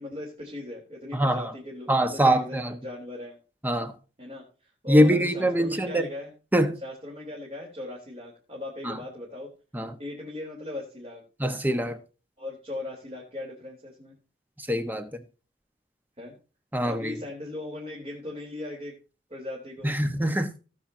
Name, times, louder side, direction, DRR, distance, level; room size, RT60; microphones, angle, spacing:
voice 1, 0.0-3.4 4.2-6.3 6.8-9.5 10.0-11.2 12.4-14.2 16.2-16.3 16.8-18.9 19.3-19.9, left 2 dB, 35° right, 3.8 m, -38 dB
voice 2, 1.1-1.4 1.9-2.7 3.6-3.9 4.9-6.0 6.5-6.7 8.8-9.0 9.7-9.9 11.4-12.0 14.7-15.1 16.7-17.1 19.8-20.5, equal, 10° right, 1.3 m, -23 dB
18.0 x 7.5 x 2.8 m
head